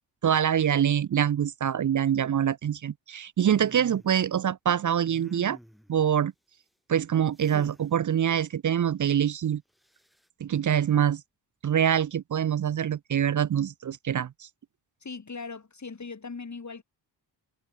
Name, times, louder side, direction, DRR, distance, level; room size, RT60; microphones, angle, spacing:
voice 1, 0.2-5.6 5.9-6.3 6.9-9.6 10.4-11.2 11.6-14.5, right 9 dB, 45° right, 0.5 m, -25 dB
sound 1, 3.6-4.1 5.0-5.9 7.4-7.9 9.8-10.3, equal, ahead, 2.6 m, -48 dB
voice 2, 15.0-16.8, left 4 dB, 40° left, 5.1 m, -39 dB
cardioid pair, 80°, 43 cm